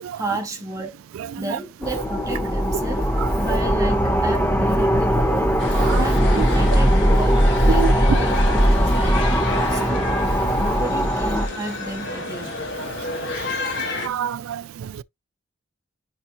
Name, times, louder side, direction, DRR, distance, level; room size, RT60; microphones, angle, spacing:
voice 1, 0.1-1.0 1.4-9.4 9.7-10.1 10.6-12.5, right 1 dB, 15° right, 1.9 m, -32 dB
sound 1, 1.8-11.5, equal, 10° left, 1.0 m, -19 dB
sound 2, 5.6-14.1, left 2 dB, 60° left, 1.7 m, -30 dB
voice 2, 14.0-15.0, right 8 dB, 85° right, 0.3 m, -27 dB
10.0 x 3.7 x 2.8 m
head